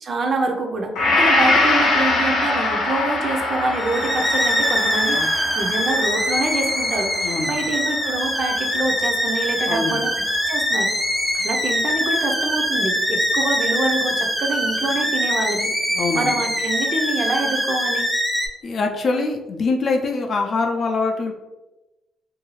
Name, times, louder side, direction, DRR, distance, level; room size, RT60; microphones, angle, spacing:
voice 1, 0.0-10.1 10.5-10.9 11.3-15.7 16.1-18.1, right 2 dB, 45° right, 3 dB, 0.5 m, -26 dB
Gong, 0.9-9.3 9.7-9.8, left 2 dB, 90° left, 0.7 m, -23 dB
sound 1, 3.7-18.5, equal, 5° left, 0.5 m, -23 dB
voice 2, 7.2-7.6 9.7-10.0 15.9-16.3 18.6-21.3, left 3 dB, 50° left, 2 dB, 0.4 m, -23 dB
2.6 x 2.3 x 3.0 m, 1.0 s
cardioid pair, 90°, 0 cm